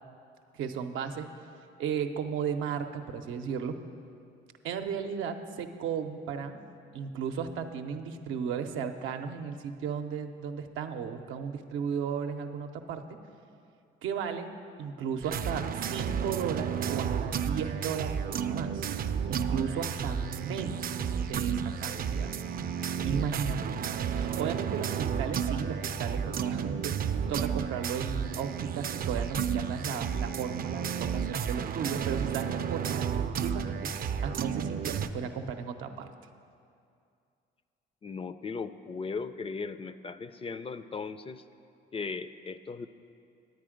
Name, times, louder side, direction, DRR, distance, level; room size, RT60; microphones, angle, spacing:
voice 1, 0.5-1.3 1.8-3.8 4.6-6.6 6.9-13.0 14.0-14.5 14.8-18.8 19.3-20.9 21.2-22.3 23.0-23.7 24.1-36.1, right 7 dB, 90° right, 6 dB, 0.6 m, -35 dB
sound 1, 15.2-35.1, right 7 dB, 50° right, 0.4 m, -32 dB
voice 2, 38.0-41.4 41.9-42.9, left 4 dB, 30° left, 12 dB, 0.4 m, -37 dB
9.3 x 9.1 x 5.0 m, 2.4 s
cardioid pair, 90°, 20 cm